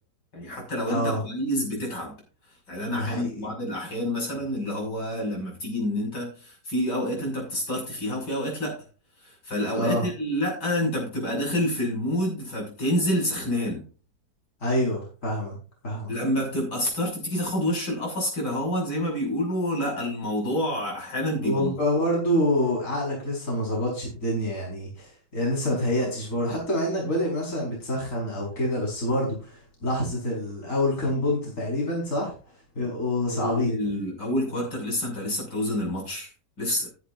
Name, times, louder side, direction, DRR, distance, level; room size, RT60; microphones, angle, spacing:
voice 1, 0.3-2.2 2.7-8.8 9.2-13.9 16.1-21.7 26.0-26.1 33.3-36.3 36.6-36.9, left 1 dB, 70° left, -1 dB, 7.0 m, -28 dB
voice 2, 0.9-1.2 2.9-3.5 9.7-10.0 14.6-15.6 15.8-16.1 21.4-32.3 32.8-33.8, left 1 dB, 45° left, -3 dB, 5.4 m, -27 dB
14.5 x 10.5 x 2.6 m, 0.36 s
omnidirectional pair, 1.9 m